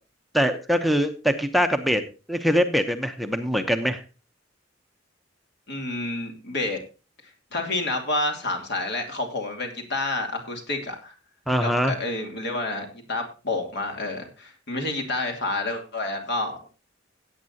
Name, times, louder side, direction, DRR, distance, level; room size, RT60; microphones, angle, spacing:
voice 1, 0.3-2.0 2.3-4.0 11.5-11.9, equal, ahead, 8 dB, 0.8 m, -23 dB
voice 2, 5.7-6.8 7.5-11.1 11.6-16.6, left 2 dB, 60° left, 4 dB, 2.8 m, -29 dB
17.0 x 8.7 x 2.8 m, 0.32 s
head